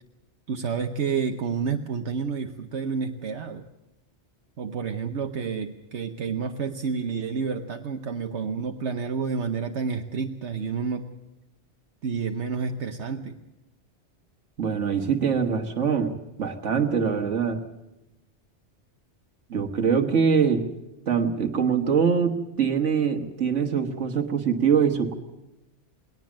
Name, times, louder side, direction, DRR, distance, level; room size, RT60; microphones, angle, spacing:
voice 1, 0.5-3.7 4.6-11.1 12.0-13.4, right 5 dB, 70° right, 5 dB, 1.2 m, -29 dB
voice 2, 14.6-16.1 16.4-17.6 19.5-20.6 21.1-25.1, right 6 dB, 90° right, 4 dB, 1.8 m, -23 dB
20.5 x 18.0 x 7.4 m, 0.94 s
omnidirectional pair, 1.2 m